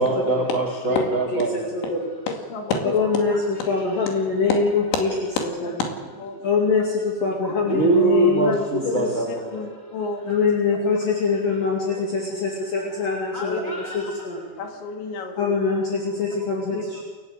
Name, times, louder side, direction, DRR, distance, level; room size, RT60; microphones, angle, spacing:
voice 1, 0.0-1.7 3.3-3.9 7.4-10.0 13.3-14.2, right 3 dB, 20° right, 2 dB, 2.8 m, -24 dB
voice 2, 1.7-2.1 2.9-5.1 5.4-5.7 6.4-9.0 10.3-14.4 15.4-17.0, left 4 dB, 55° left, -2 dB, 4.0 m, -24 dB
voice 3, 2.5-2.9 5.4-5.8 6.2-6.4 8.4-8.6 8.8-9.1 9.5-10.2 13.5-13.6 14.6-15.3 16.7-16.8, left 4 dB, 90° left, 2 dB, 4.6 m, -29 dB
28.5 x 14.0 x 8.1 m, 1.5 s
omnidirectional pair, 5.0 m